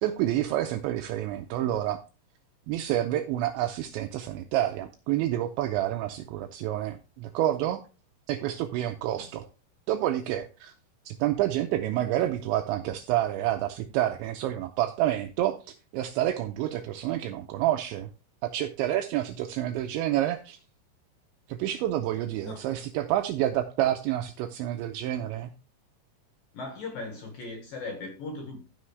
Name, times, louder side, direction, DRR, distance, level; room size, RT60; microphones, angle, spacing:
voice 1, 0.0-2.0 2.7-7.8 8.3-9.4 9.9-10.7 11.1-18.1 18.4-20.6 21.5-25.5, right 13 dB, 85° right, 2.6 m, -28 dB
voice 2, 26.5-28.6, left 3 dB, 60° left, 2.6 m, -38 dB
15.0 x 5.6 x 3.2 m
omnidirectional pair, 5.8 m